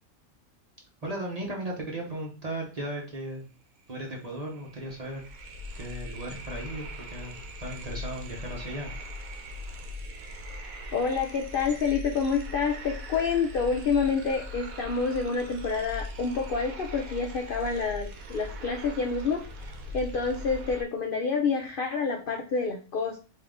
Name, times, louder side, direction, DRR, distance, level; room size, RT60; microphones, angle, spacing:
voice 1, 1.0-3.5 3.9-5.2 5.8-8.9, right 1 dB, 35° right, -1 dB, 0.8 m, -36 dB
sound 1, 3.8-3.9 4.2-20.8, left 1 dB, 80° right, 1.1 m, -40 dB
voice 2, 10.9-23.2, left 5 dB, 65° left, 2 dB, 0.5 m, -28 dB
3.7 x 2.7 x 3.5 m, 0.36 s
omnidirectional pair, 1.5 m